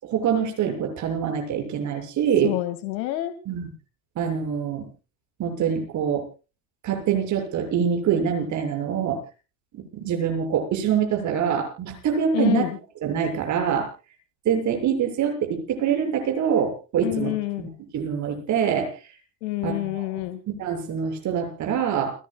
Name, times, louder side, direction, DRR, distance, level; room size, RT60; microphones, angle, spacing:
voice 1, 0.0-2.5 3.5-3.7 4.2-4.9 5.4-6.2 6.8-9.2 9.7-12.6 13.0-13.9 14.4-17.3 17.6-18.9 19.6-20.0 20.5-22.1, right 8 dB, 35° right, 3 dB, 7.3 m, -25 dB
voice 2, 2.4-3.3 12.3-12.8 17.0-17.7 19.4-20.4, left 16 dB, 80° left, 10 dB, 2.5 m, -27 dB
30.0 x 14.5 x 2.4 m, 0.34 s
supercardioid pair, 150°, 49 cm